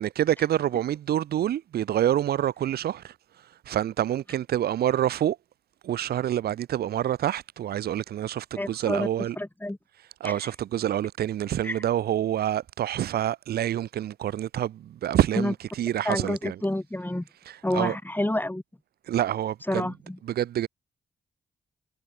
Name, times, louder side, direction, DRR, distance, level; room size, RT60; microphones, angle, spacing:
voice 1, 0.0-3.1 3.7-5.4 5.8-9.4 10.2-16.6 17.5-17.9 19.1-19.9 20.2-20.7, right 11 dB, 85° right, 4.9 m, -27 dB
voice 2, 8.6-9.1 9.4-9.8 10.2-10.3 11.6-11.8 15.4-15.5 16.0-17.2 17.6-18.6 19.7-20.2, left 1 dB, 10° left, 6.4 m, -28 dB
supercardioid pair, 55°, 16 cm